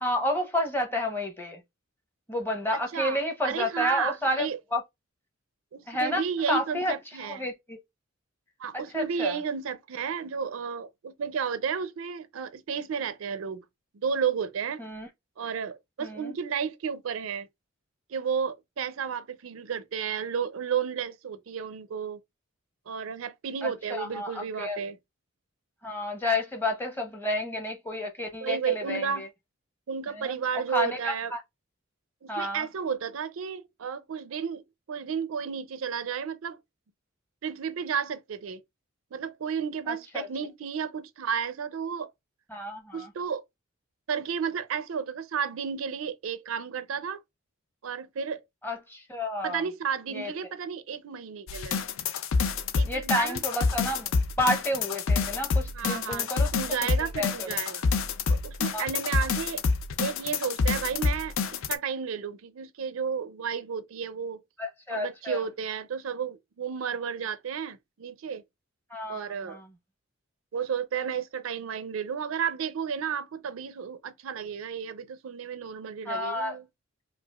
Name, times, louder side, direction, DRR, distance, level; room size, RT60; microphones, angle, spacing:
voice 1, 0.0-1.6 2.3-4.8 5.9-6.9 7.3-7.8 8.9-9.4 14.8-15.1 16.0-16.3 23.6-24.8 25.8-29.3 30.1-30.4 30.7-31.4 32.3-32.7 39.9-40.3 42.5-43.1 48.6-49.6 50.1-50.3 52.8-54.1 54.4-56.5 56.8-57.5 58.7-58.8 64.6-65.4 68.9-69.7 76.1-76.6, left 1 dB, 10° left, 0.7 m, -30 dB
voice 2, 2.7-3.2 3.4-4.6 5.7-7.4 8.6-13.6 13.9-14.8 15.4-17.5 18.1-22.2 22.9-25.0 28.4-29.3 29.9-31.3 32.2-36.6 37.4-38.6 39.1-42.1 42.9-43.4 44.1-47.2 47.8-48.4 49.4-51.8 52.7-53.4 55.7-57.8 58.3-59.6 60.0-64.4 64.9-68.4 69.1-69.6 70.5-76.7, right 7 dB, 80° right, 0.4 m, -32 dB
sound 1, 51.5-61.8, left 4 dB, 75° left, 0.5 m, -27 dB
4.9 x 2.4 x 2.3 m
head